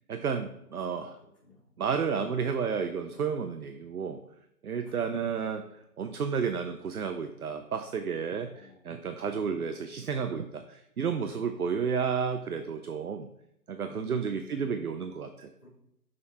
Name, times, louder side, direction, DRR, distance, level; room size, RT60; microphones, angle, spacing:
voice 1, 0.1-1.2 1.8-4.2 4.6-5.6 6.0-8.5 8.8-13.3 13.7-15.5, right 6 dB, 70° right, 8 dB, 0.6 m, -31 dB
voice 2, 0.8-1.7 4.8-4.9 8.5-8.8 13.9-14.8 15.6-15.7, left 5 dB, 15° left, -14 dB, 2.1 m, -53 dB
6.3 x 4.3 x 4.4 m, 0.78 s
figure-of-eight pair, 175°, 46 cm